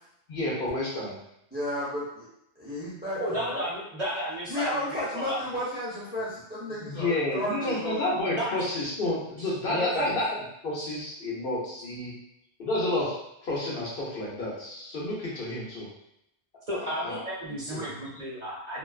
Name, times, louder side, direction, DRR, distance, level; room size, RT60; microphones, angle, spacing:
voice 1, 0.3-1.2 6.8-12.1 12.6-15.9 16.8-17.2 17.7-17.8, left 1 dB, 60° left, -6 dB, 0.9 m, -30 dB
voice 2, 1.5-2.3 2.6-3.7 4.5-8.0, left 1 dB, 10° right, -8 dB, 0.5 m, -33 dB
voice 3, 3.2-5.6 8.3-8.5 9.4-10.2 10.8-10.9 16.7-18.8, equal, 45° right, -7 dB, 0.8 m, -33 dB
2.4 x 2.2 x 2.3 m, 0.78 s
omnidirectional pair, 1.1 m